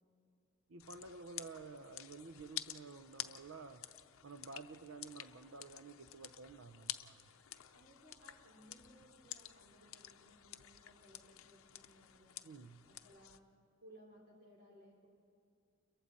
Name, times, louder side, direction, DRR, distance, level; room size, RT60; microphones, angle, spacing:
voice 1, 0.7-3.9 4.2-7.2 12.4-12.9, right 4 dB, 85° right, 8 dB, 0.7 m, -52 dB
sound 1, 0.8-13.4, left 13 dB, 85° left, 0.6 m, -51 dB
voice 2, 7.7-12.4 12.9-13.4 13.8-15.1, equal, 50° right, -3 dB, 3.8 m, -62 dB
29.5 x 22.5 x 4.2 m, 2.4 s
head